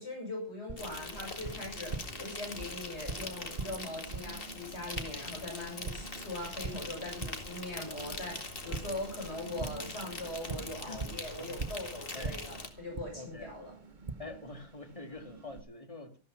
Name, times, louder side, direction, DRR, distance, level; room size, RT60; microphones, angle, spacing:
voice 1, 0.0-13.7, left 1 dB, 70° left, 7.6 m, -41 dB
Tap, 0.7-15.6, right 3 dB, 45° right, 1.3 m, -44 dB
Insect, 0.8-12.7, left 2 dB, 55° left, 2.3 m, -43 dB
voice 2, 3.0-3.8 10.8-11.1 11.4-11.6 12.1-12.4 13.1-13.5 14.2-16.2, left 3 dB, 30° left, 2.1 m, -46 dB
14.0 x 13.0 x 5.7 m
omnidirectional pair, 1.2 m